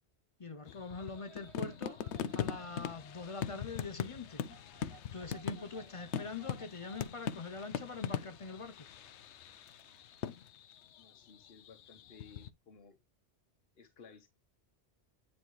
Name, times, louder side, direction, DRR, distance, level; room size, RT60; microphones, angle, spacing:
voice 1, 0.4-2.1 2.3-4.5 5.1-8.9, left 4 dB, 45° left, 0.4 m, -43 dB
sound 1, 0.7-12.5, left 8 dB, 80° left, 0.9 m, -41 dB
sound 2, 0.7-10.5, right 11 dB, 75° right, 0.9 m, -62 dB
voice 2, 5.5-5.9 11.0-13.0 13.8-14.3, left 5 dB, 65° left, 1.2 m, -58 dB
9.5 x 4.1 x 3.1 m
omnidirectional pair, 1.1 m